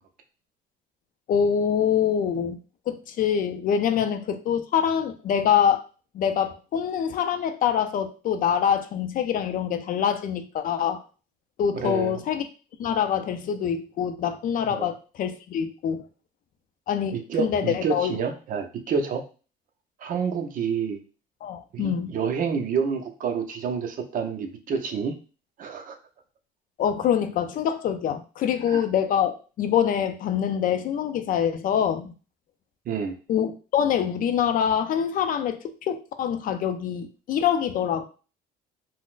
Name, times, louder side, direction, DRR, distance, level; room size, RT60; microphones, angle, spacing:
voice 1, 1.3-2.6 2.9-5.8 6.1-11.0 11.6-12.5 12.8-16.0 16.9-18.1 21.4-22.1 26.8-32.1 33.3-38.0, left 8 dB, 55° left, 9 dB, 0.4 m, -25 dB
voice 2, 11.8-12.2 14.6-14.9 17.1-19.2 20.0-21.0 21.7-25.1 25.6-26.0 28.7-28.8 32.9-33.1, right 6 dB, 55° right, 5 dB, 0.6 m, -28 dB
3.9 x 2.0 x 2.4 m, 0.35 s
cardioid pair, 110°, 17 cm